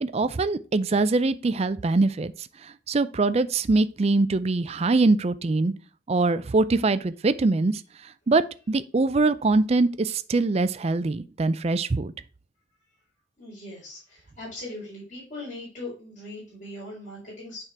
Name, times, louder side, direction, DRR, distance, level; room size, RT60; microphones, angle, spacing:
voice 1, 0.0-5.7 6.1-12.1, right 3 dB, 30° right, 0.4 m, -23 dB
voice 2, 13.4-17.6, left 2 dB, 40° left, 4.3 m, -40 dB
9.0 x 3.7 x 4.5 m
head